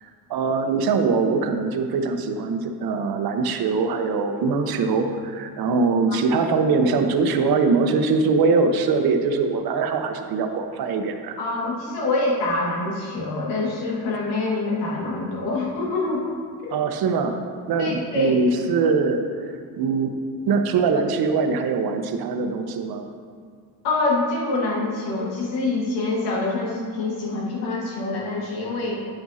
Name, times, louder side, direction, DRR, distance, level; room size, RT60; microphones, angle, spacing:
voice 1, 0.0-11.4 16.7-17.4 17.7-20.2 20.5-23.1, right 4 dB, 60° right, 5 dB, 1.0 m, -22 dB
voice 2, 11.4-16.3 16.6-16.8 17.8-18.4 23.8-28.9, left 2 dB, 85° left, -3 dB, 2.1 m, -25 dB
10.0 x 7.9 x 2.8 m, 2.1 s
supercardioid pair, 70°, 41 cm